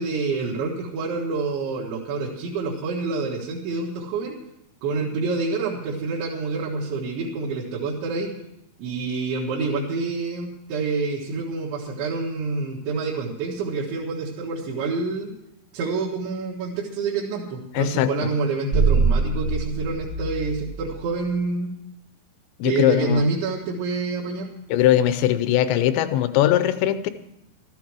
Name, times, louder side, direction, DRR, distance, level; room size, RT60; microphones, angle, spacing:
voice 1, 0.0-4.4 4.8-8.3 8.8-15.3 15.7-21.7 22.6-24.5, right 3 dB, 75° right, -5 dB, 3.8 m, -27 dB
voice 2, 17.7-18.3 22.6-23.3 24.7-27.1, left 12 dB, 80° left, 11 dB, 2.7 m, -20 dB
sound 1, 18.7-21.1, right 3 dB, 55° right, 1.3 m, -23 dB
14.5 x 13.0 x 4.7 m, 0.80 s
omnidirectional pair, 5.3 m